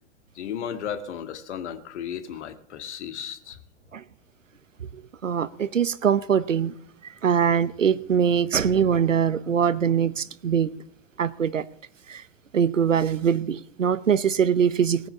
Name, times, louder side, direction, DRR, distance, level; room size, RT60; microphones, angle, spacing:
voice 1, 0.4-3.6, left 8 dB, 65° left, 1.9 m, -34 dB
voice 2, 5.2-6.7 7.2-10.7 11.2-11.7 12.1-12.2 12.5-15.1, right 7 dB, 85° right, 0.9 m, -22 dB
19.0 x 9.2 x 7.0 m
figure-of-eight pair, 95°, 37 cm